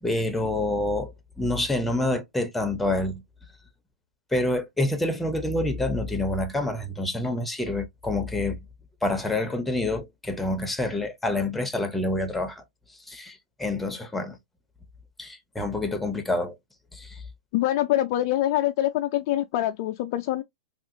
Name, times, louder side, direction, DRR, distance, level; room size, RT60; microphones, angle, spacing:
voice 1, 0.0-3.2 4.3-8.6 9.0-12.6 13.1-14.4 15.2-16.5 16.9-17.2, left 2 dB, 5° left, 0.7 m, -27 dB
voice 2, 17.5-20.4, left 14 dB, 50° left, 0.4 m, -24 dB
3.5 x 2.4 x 2.7 m
hypercardioid pair, 135°, 3 cm